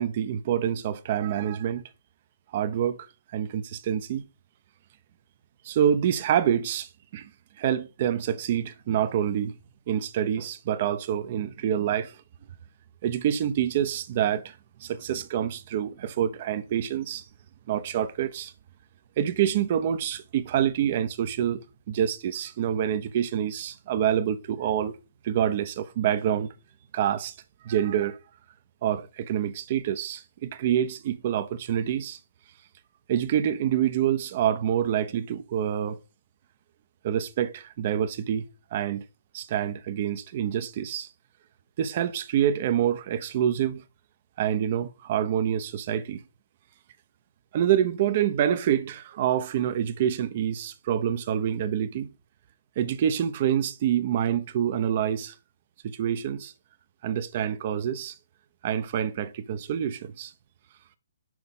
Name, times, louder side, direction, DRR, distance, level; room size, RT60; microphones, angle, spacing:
voice 1, 0.0-1.8 2.5-3.0 3.3-4.3 5.6-7.3 7.6-9.6 9.9-12.2 13.0-17.2 17.7-18.5 19.2-25.0 25.2-26.5 26.9-27.3 27.6-28.2 28.8-32.2 33.1-36.0 37.0-38.4 38.7-39.0 39.3-41.1 41.8-43.8 44.4-46.2 47.5-52.1 52.8-55.3 55.8-56.5 57.0-58.2 58.6-60.3, right 10 dB, 40° right, 0.8 m, -26 dB
6.3 x 4.9 x 5.5 m
hypercardioid pair, 150°, 0 cm